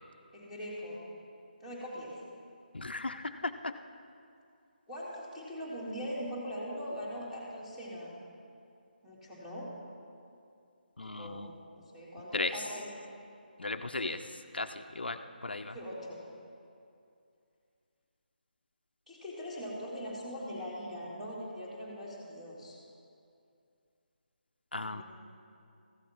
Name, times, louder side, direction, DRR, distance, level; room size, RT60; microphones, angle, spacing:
voice 1, 0.3-1.0 1.6-2.2 4.9-8.1 9.0-9.7 11.0-11.6 11.9-12.9 15.6-16.2 19.1-22.8 24.8-25.0, equal, 5° right, -8 dB, 2.3 m, -41 dB
voice 2, 2.7-3.7 11.0-11.5 12.3-12.5 13.6-15.8 24.7-25.0, left 2 dB, 85° left, 8 dB, 0.6 m, -36 dB
14.5 x 7.4 x 5.7 m, 2.5 s
figure-of-eight pair, 155°, 5 cm